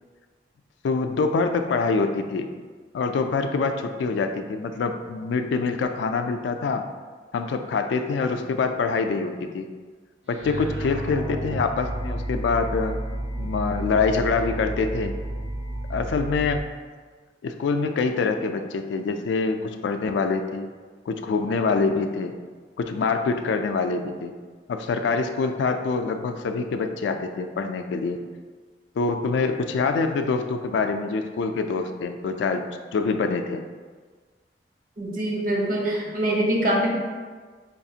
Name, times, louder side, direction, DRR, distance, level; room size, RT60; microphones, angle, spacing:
voice 1, 0.8-2.5 2.9-6.9 7.3-9.7 10.3-13.0 13.4-15.1 15.9-16.7 17.4-20.7 21.1-22.4 22.8-24.3 24.7-28.2 29.0-32.7 32.9-33.6, left 4 dB, 85° left, 7 dB, 0.3 m, -25 dB
sound 1, 10.3-16.6, right 1 dB, 85° right, 0.7 m, -31 dB
voice 2, 35.0-36.9, right 1 dB, 50° right, -1 dB, 0.7 m, -24 dB
5.0 x 2.4 x 2.7 m, 1.5 s
head